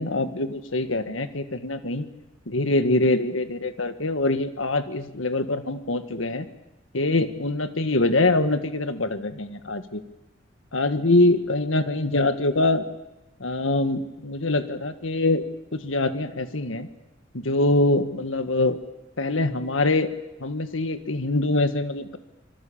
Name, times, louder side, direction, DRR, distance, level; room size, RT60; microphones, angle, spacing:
voice 1, 0.0-2.1 2.5-6.5 6.9-10.0 10.7-12.8 13.4-15.4 15.7-16.9 17.3-18.8 19.2-20.1 20.4-22.2, left 2 dB, 90° left, 9 dB, 1.8 m, -24 dB
26.0 x 25.5 x 7.4 m, 0.99 s
head